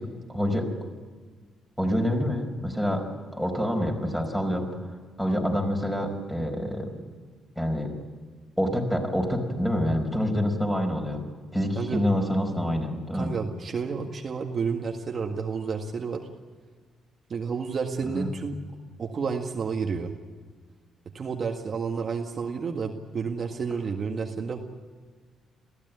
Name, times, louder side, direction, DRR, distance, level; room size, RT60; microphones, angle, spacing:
voice 1, 0.3-0.7 1.8-4.7 5.2-7.1 7.6-7.9 8.6-11.2 11.5-13.3 18.1-18.3, equal, 5° left, 3 dB, 5.0 m, -27 dB
voice 2, 11.8-12.1 13.1-16.3 17.3-18.6 19.0-20.1 21.1-24.6, right 5 dB, 45° right, 2 dB, 1.8 m, -30 dB
22.0 x 15.0 x 9.4 m, 1.5 s
cardioid pair, 90°, 0 cm